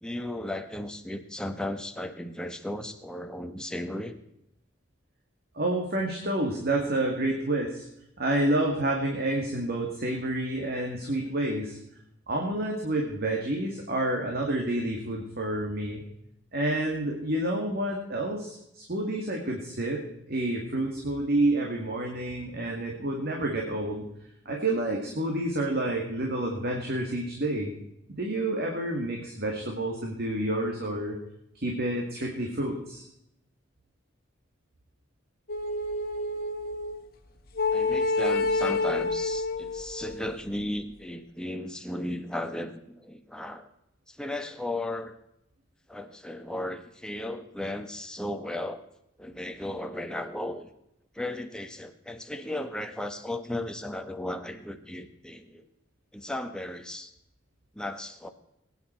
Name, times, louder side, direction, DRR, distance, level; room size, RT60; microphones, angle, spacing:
voice 1, 0.0-4.2 37.7-43.7 44.1-45.1 45.9-48.8 49.2-50.7 51.1-55.7 56.1-57.1 57.7-58.3, left 1 dB, 5° left, 7 dB, 1.1 m, -35 dB
voice 2, 5.5-7.9 8.2-11.8 12.3-16.0 16.5-20.0 20.3-24.0 24.5-27.7 28.2-31.2 31.5-33.0, right 1 dB, 55° right, 1 dB, 2.1 m, -29 dB
sound 1, 35.5-37.0 37.6-40.3, left 3 dB, 50° left, 1.6 m, -28 dB
20.5 x 9.6 x 4.5 m, 0.81 s
head